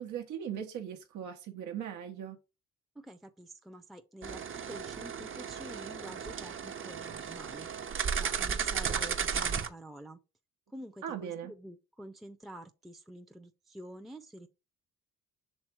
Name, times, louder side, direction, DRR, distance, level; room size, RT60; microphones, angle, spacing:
voice 1, 0.0-2.4 11.0-11.5, right 9 dB, 75° right, 0.9 m, -39 dB
voice 2, 3.0-7.7 8.2-10.2 10.7-14.5, right 1 dB, ahead, 0.5 m, -48 dB
sound 1, 4.2-9.7, right 7 dB, 45° right, 0.8 m, -34 dB
6.4 x 3.5 x 4.4 m
cardioid pair, 90°, 30 cm